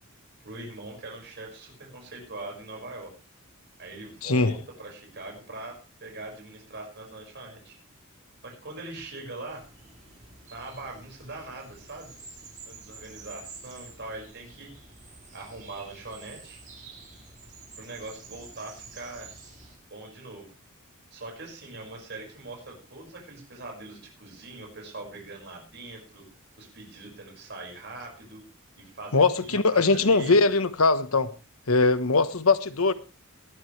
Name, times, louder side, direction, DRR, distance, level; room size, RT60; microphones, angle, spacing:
voice 1, 0.4-3.1 3.8-5.8 6.0-7.8 8.4-9.6 10.5-12.2 12.7-14.7 15.3-16.6 17.8-19.3 19.9-20.5 21.1-26.2 26.6-28.4 28.8-30.4, right 2 dB, 55° right, 5.7 m, -41 dB
voice 2, 4.2-4.5 29.1-31.3 31.7-32.9, left 3 dB, 90° left, 1.3 m, -21 dB
sound 1, 9.5-19.8, right 4 dB, 40° right, 5.0 m, -49 dB
19.0 x 12.5 x 3.3 m
head